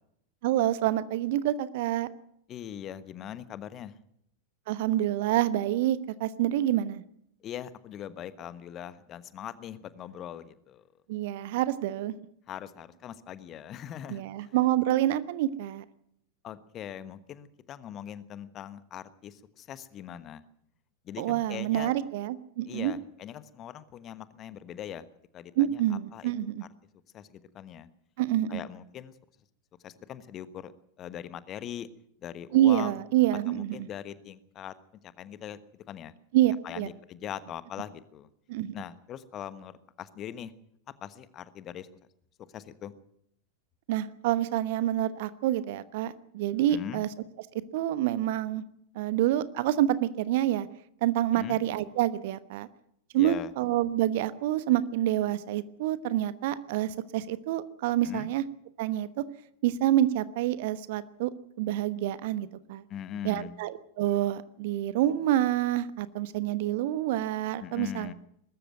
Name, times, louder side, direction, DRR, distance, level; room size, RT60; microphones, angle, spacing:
voice 1, 0.4-2.1 4.7-7.0 11.1-12.1 14.1-15.8 21.2-22.9 25.6-26.6 28.2-28.6 32.5-33.9 36.3-36.9 38.5-38.7 43.9-47.1 47.7-48.6 48.9-50.7 51.0-52.7 53.1-58.4 58.8-59.2 59.6-61.3 61.6-62.8 63.2-68.1, right 13 dB, 50° right, 16 dB, 1.1 m, -27 dB
voice 2, 2.5-4.0 7.4-10.8 12.5-14.6 16.4-20.4 21.0-21.9 22.7-25.0 25.3-26.3 27.1-27.9 28.5-29.1 29.8-30.7 31.0-31.9 32.2-33.0 33.5-34.7 35.2-36.1 36.6-38.3 38.7-40.5 41.0-41.9 42.5-42.9 46.7-47.0 51.3-51.6 53.2-53.5 58.0-58.3 62.9-63.5 67.6-68.1, left 10 dB, 30° left, 15 dB, 1.3 m, -41 dB
21.5 x 13.5 x 9.2 m, 0.73 s
figure-of-eight pair, 90°, 0 cm